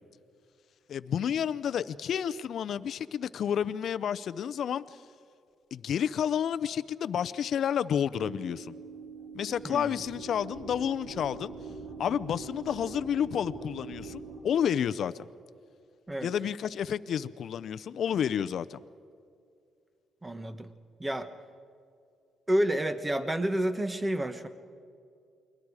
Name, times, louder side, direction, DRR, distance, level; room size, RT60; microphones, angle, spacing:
voice 1, 0.9-5.0 5.7-8.7 9.3-11.5 12.0-15.3 16.2-18.8, left 8 dB, 65° left, 14 dB, 0.6 m, -30 dB
sound 1, 8.1-14.4, right 4 dB, 90° right, 4.8 m, -43 dB
voice 2, 9.6-10.0 16.1-16.3 20.2-20.7 21.0-21.3 22.5-24.5, right 1 dB, 15° right, 9 dB, 1.4 m, -29 dB
29.0 x 22.0 x 4.9 m, 2.4 s
cardioid pair, 90°, 0 cm